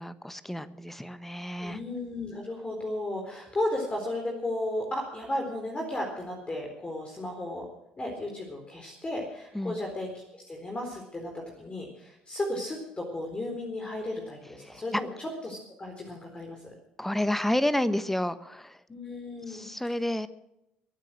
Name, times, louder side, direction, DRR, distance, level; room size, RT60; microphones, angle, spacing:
voice 1, 0.0-1.8 9.5-9.8 14.6-15.0 17.0-18.8 19.5-20.3, left 1 dB, 5° left, 14 dB, 1.2 m, -30 dB
voice 2, 1.6-7.7 8.0-16.7 18.9-19.7, left 1 dB, 25° left, 1 dB, 4.1 m, -34 dB
22.0 x 9.2 x 6.2 m, 0.86 s
hypercardioid pair, 55°, 4 cm